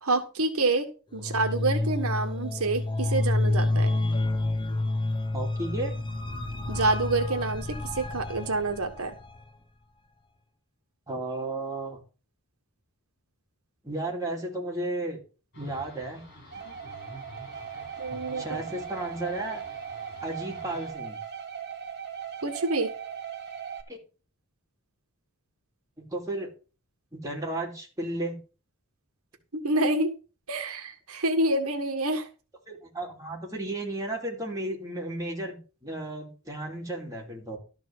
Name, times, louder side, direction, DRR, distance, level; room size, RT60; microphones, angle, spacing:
voice 1, 0.0-3.9 6.7-9.2 18.0-18.6 22.4-22.9 29.6-30.1 30.5-32.3, right 2 dB, 80° right, 6 dB, 1.6 m, -27 dB
sound 1, 1.1-9.4, left 2 dB, 20° left, 0.8 m, -29 dB
voice 2, 5.3-6.0 11.1-12.0 13.8-15.2 15.5-16.2 18.3-19.6 20.2-21.2 23.9-24.0 26.0-26.5 27.1-28.4 32.7-37.6, right 2 dB, 15° right, -1 dB, 3.1 m, -33 dB
sound 2, 15.5-20.9, left 1 dB, 50° left, 5.0 m, -48 dB
sound 3, 16.5-23.8, right 7 dB, 50° right, 1.6 m, -39 dB
12.5 x 4.7 x 7.3 m, 0.35 s
head